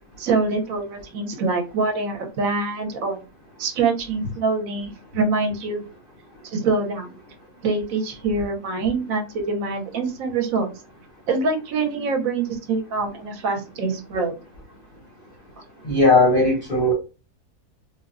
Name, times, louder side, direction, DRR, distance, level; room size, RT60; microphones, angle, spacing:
voice 1, 0.2-3.2 3.6-5.9 6.4-7.1 7.6-10.7 11.3-14.3, right 3 dB, 70° right, 1.0 m, -25 dB
voice 2, 15.8-16.9, left 2 dB, 55° left, 0.6 m, -17 dB
3.6 x 2.0 x 2.4 m
omnidirectional pair, 1.6 m